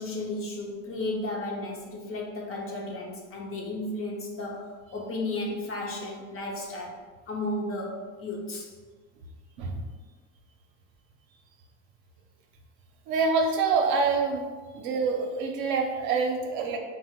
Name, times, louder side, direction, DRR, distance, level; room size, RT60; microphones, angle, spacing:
voice 1, 0.0-8.7 14.7-14.8, left 2 dB, 35° left, -1 dB, 0.6 m, -34 dB
voice 2, 13.1-14.5 14.7-16.8, right 4 dB, 60° right, 3 dB, 0.6 m, -26 dB
2.8 x 2.1 x 3.5 m, 1.4 s
supercardioid pair, 100°, 41 cm